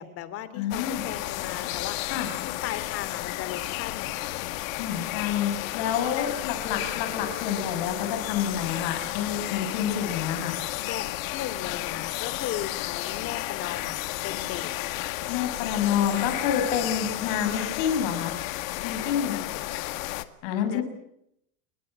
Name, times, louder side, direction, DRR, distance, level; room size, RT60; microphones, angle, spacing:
voice 1, 0.0-2.0 2.4-4.5 6.2-6.3 10.8-11.0 11.3-14.0 14.2-14.7 17.7-17.8 18.9-19.5 19.7-20.0 20.7-20.8, left 11 dB, 35° left, 14 dB, 2.7 m, -37 dB
voice 2, 0.5-1.0 2.1-2.3 4.8-10.6 15.3-18.4 18.8-19.4 20.4-20.8, left 8 dB, 60° left, 6 dB, 6.1 m, -28 dB
sound 1, 0.7-20.3, left 17 dB, 80° left, 2.0 m, -32 dB
29.0 x 22.0 x 7.6 m, 0.77 s
cardioid pair, 170°, 40 cm